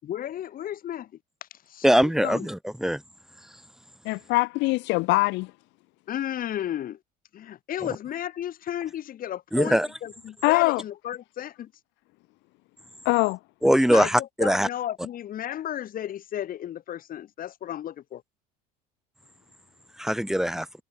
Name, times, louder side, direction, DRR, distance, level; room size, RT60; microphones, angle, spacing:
voice 1, 0.0-1.1 1.4-2.5 6.1-7.0 7.3-11.7 13.9-18.2, left 11 dB, 45° left, 5.8 m, -33 dB
voice 2, 1.8-3.0 9.5-9.9 13.6-14.7 20.0-20.7, equal, ahead, 4.1 m, -21 dB
voice 3, 4.0-5.5 10.4-10.8 13.0-13.4, left 23 dB, 65° left, 1.3 m, -22 dB
supercardioid pair, 105°, 20 cm